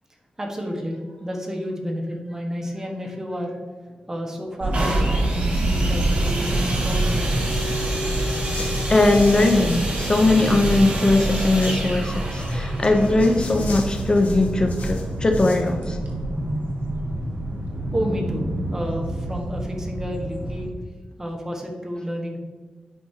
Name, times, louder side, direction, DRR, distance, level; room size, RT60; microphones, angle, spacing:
voice 1, 0.4-3.6 4.1-7.7 17.9-20.7 21.2-22.4, equal, 20° right, 1 dB, 1.2 m, -30 dB
sound 1, 4.6-20.7, right 1 dB, 75° right, 1.6 m, -26 dB
sound 2, 4.7-14.4 15.1-15.2, right 1 dB, 55° right, 2.0 m, -31 dB
sound 3, 7.5-9.9 10.2-11.8 12.3-15.7, left 3 dB, 75° left, 1.2 m, -40 dB
voice 2, 8.9-16.0, left 2 dB, 30° left, 4 dB, 0.6 m, -20 dB
8.6 x 5.4 x 2.8 m, 1.4 s
wide cardioid pair, 90°, 3 cm